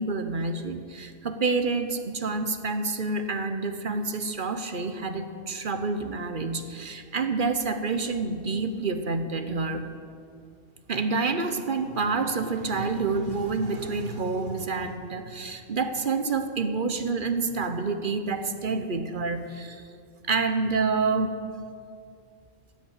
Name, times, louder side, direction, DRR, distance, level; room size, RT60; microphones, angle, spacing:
voice 1, 0.0-9.8 10.9-19.8 20.3-21.4, right 4 dB, 50° right, 8 dB, 1.0 m, -28 dB
15.5 x 8.4 x 8.1 m, 2.3 s
omnidirectional pair, 1.2 m